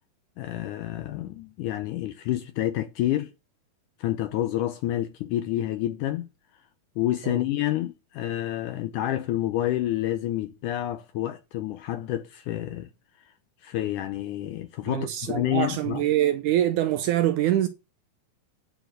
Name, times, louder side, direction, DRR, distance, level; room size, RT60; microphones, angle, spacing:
voice 1, 0.4-3.3 4.0-6.3 7.0-12.9 13.6-16.0, left 13 dB, 75° left, 1.9 m, -28 dB
voice 2, 14.9-17.7, right 12 dB, 75° right, 1.9 m, -24 dB
10.0 x 4.8 x 6.4 m
omnidirectional pair, 4.1 m